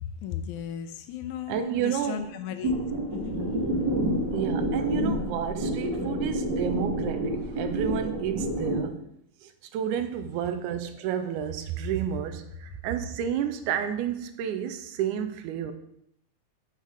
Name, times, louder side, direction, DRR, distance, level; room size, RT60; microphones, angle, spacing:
voice 1, 0.0-2.8 3.1-3.4, left 9 dB, 80° left, 9 dB, 1.9 m, -35 dB
voice 2, 1.5-2.3 4.3-9.0 9.4-15.7, right 9 dB, 85° right, 9 dB, 2.1 m, -31 dB
sound 1, 2.6-8.8, right 1 dB, 35° right, 2.8 m, -28 dB
6.7 x 6.5 x 4.8 m, 0.75 s
omnidirectional pair, 3.6 m